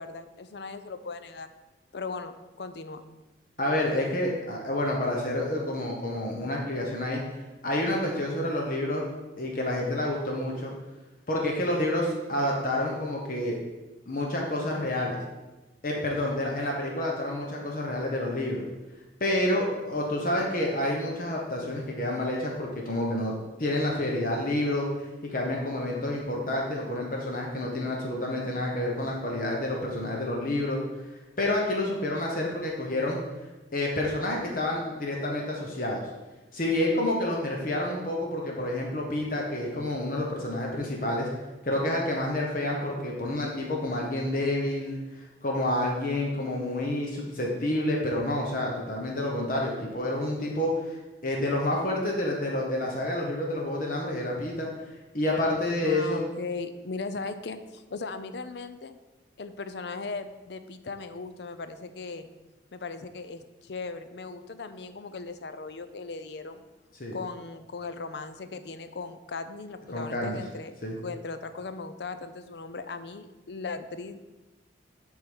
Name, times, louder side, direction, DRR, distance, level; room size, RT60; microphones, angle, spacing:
voice 1, 0.0-1.5 1.9-2.3 2.6-3.0 55.8-59.0 59.4-62.3 62.7-66.6 67.1-70.7 71.0-74.3, left 4 dB, 65° left, 10 dB, 0.5 m, -38 dB
voice 2, 3.6-7.2 7.6-9.1 9.4-10.7 11.3-13.6 14.1-15.2 15.8-18.6 19.2-23.3 23.6-24.9 25.2-30.8 31.4-33.2 33.7-36.0 36.5-41.3 41.6-51.0 51.2-54.7 55.1-56.2 67.0-67.2 69.9-70.4 70.8-70.9, left 1 dB, 45° left, -1 dB, 1.0 m, -29 dB
7.7 x 3.7 x 6.2 m, 1.1 s
head